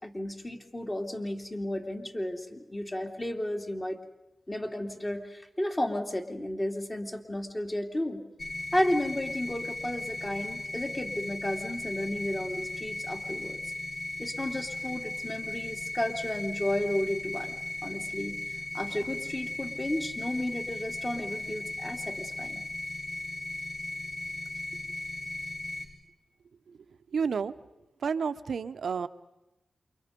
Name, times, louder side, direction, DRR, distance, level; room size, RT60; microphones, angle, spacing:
voice 1, 0.0-4.0 4.5-8.2 8.7-13.6 14.2-17.5 17.8-18.4 18.7-22.6, left 1 dB, 25° left, 2 dB, 3.1 m, -33 dB
sound 1, 8.4-25.8, left 2 dB, 65° left, 6.6 m, -37 dB
voice 2, 27.1-27.6 28.0-29.1, right 6 dB, 80° right, 12 dB, 0.9 m, -30 dB
28.5 x 24.5 x 5.3 m, 0.96 s
cardioid pair, 60°, 0 cm